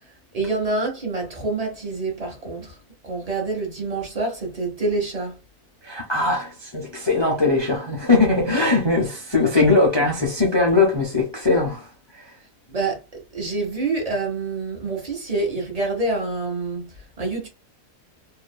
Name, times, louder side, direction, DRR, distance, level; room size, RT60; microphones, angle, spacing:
voice 1, 0.3-2.8 3.0-5.4 12.7-13.0 13.3-17.5, right 3 dB, 30° right, 0.8 m, -27 dB
voice 2, 5.8-11.9 12.1-12.2, left 3 dB, 40° left, 0.4 m, -20 dB
2.8 x 2.4 x 2.2 m
omnidirectional pair, 1.7 m